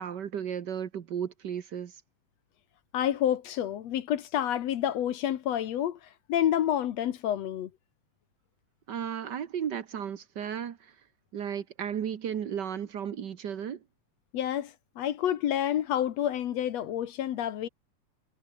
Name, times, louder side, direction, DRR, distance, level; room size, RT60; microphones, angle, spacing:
voice 1, 0.0-2.0 8.9-10.9 11.3-13.8, right 8 dB, 60° right, 1.1 m, -34 dB
voice 2, 2.9-6.0 6.3-7.7 14.3-17.7, left 11 dB, 65° left, 2.1 m, -29 dB
omnidirectional pair, 3.6 m